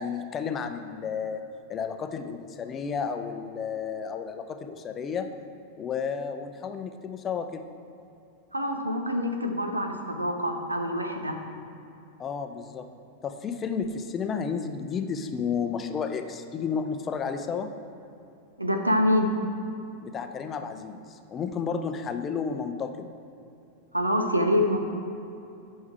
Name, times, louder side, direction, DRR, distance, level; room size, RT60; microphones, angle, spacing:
voice 1, 0.0-1.4 1.7-5.3 5.8-7.6 12.2-12.9 13.2-17.7 20.0-23.1, left 6 dB, 25° left, 7 dB, 0.6 m, -32 dB
voice 2, 8.5-11.4 18.6-19.3 23.9-24.8, left 1 dB, 85° right, 5 dB, 0.8 m, -25 dB
10.5 x 5.7 x 4.4 m, 2.7 s
figure-of-eight pair, 90°, 0 cm